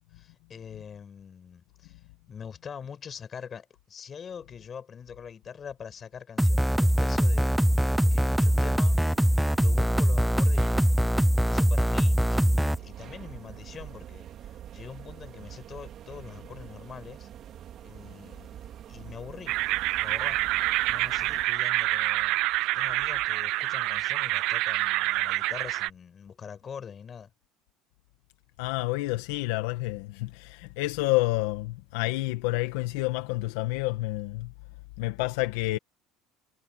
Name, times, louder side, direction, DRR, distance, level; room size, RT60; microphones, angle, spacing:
voice 1, 0.1-2.0 2.3-7.5 8.1-9.0 9.6-11.0 11.4-17.3 17.8-19.6 20.0-20.4 20.9-27.3, left 7 dB, 35° left, 5.6 m, -44 dB
sound 1, 6.4-12.8, equal, ahead, 0.6 m, -23 dB
sound 2, 6.8-21.5, right 10 dB, 50° right, 4.1 m, -45 dB
sound 3, 19.5-25.9, right 19 dB, 70° right, 0.7 m, -27 dB
voice 2, 28.6-34.5 35.0-35.8, left 20 dB, 85° left, 1.6 m, -29 dB
supercardioid pair, 100°, 0 cm